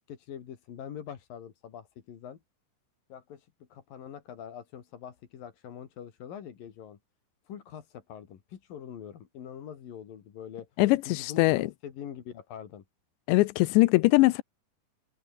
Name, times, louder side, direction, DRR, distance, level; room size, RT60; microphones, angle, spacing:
voice 1, 0.0-2.4 3.1-7.0 7.5-10.7 11.1-12.8, left 9 dB, 55° left, 3.8 m, -44 dB
voice 2, 10.8-11.7 13.3-14.4, left 21 dB, 85° left, 3.0 m, -22 dB
omnidirectional pair, 5.0 m